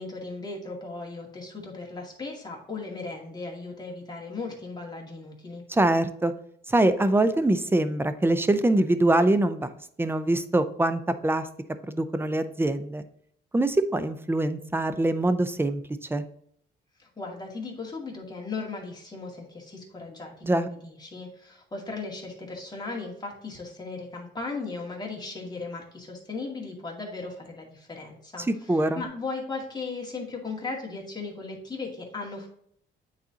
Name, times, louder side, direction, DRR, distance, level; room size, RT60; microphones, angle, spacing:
voice 1, 0.0-5.6 17.0-32.5, left 3 dB, 20° left, -2 dB, 2.1 m, -37 dB
voice 2, 5.7-6.3 6.7-9.7 10.0-11.5 11.9-13.0 13.5-16.2 20.4-20.7 28.5-29.0, right 1 dB, 10° right, 11 dB, 0.5 m, -24 dB
8.9 x 4.1 x 2.8 m, 0.68 s
cardioid pair, 90°, 20 cm